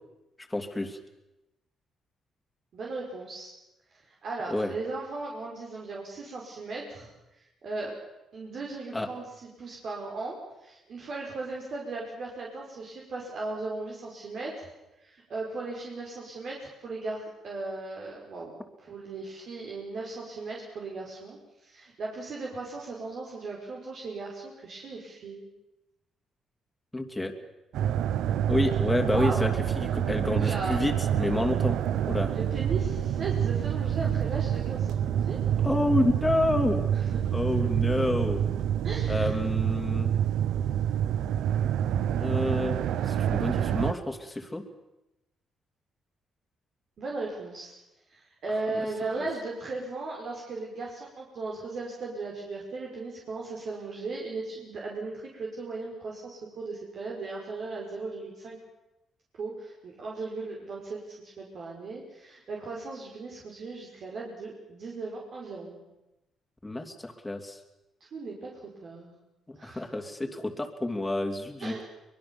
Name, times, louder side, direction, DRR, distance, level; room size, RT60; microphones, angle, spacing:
voice 1, 0.5-1.0 4.5-4.7 8.9-9.1 26.9-27.3 28.5-31.8 32.1-32.3 35.6-36.8 37.3-38.4 39.1-40.1 42.1-42.8 43.1-44.6 48.7-48.8 66.6-67.6 69.5-71.8, left 1 dB, 10° left, 3 dB, 3.0 m, -29 dB
voice 2, 2.7-3.5 3.9-7.1 7.6-8.0 8.3-14.7 15.0-25.4 29.0-29.6 30.4-30.8 32.2-35.9 37.1-37.2 37.5-37.6 38.8-39.3 47.0-47.8 48.1-58.6 59.3-65.8 68.1-69.2 69.6-69.8 71.6-71.8, right 3 dB, 60° right, -2 dB, 5.2 m, -37 dB
sound 1, 27.7-43.9, right 10 dB, 85° right, 1.0 m, -27 dB
24.0 x 21.5 x 7.2 m, 0.94 s
cardioid pair, 90°, 0 cm